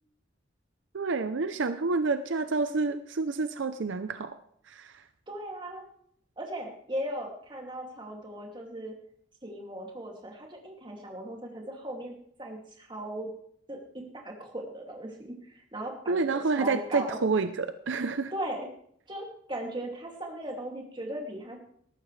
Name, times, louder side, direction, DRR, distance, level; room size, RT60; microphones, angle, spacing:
voice 1, 0.9-4.4 4.7-5.0 16.1-18.3, right 4 dB, 75° right, 10 dB, 0.6 m, -29 dB
voice 2, 5.3-5.8 6.4-8.9 9.4-12.1 12.4-13.3 13.7-17.2 18.3-18.7 19.1-21.6, right 1 dB, 25° right, 0 dB, 2.5 m, -38 dB
19.0 x 13.5 x 3.3 m, 0.66 s
head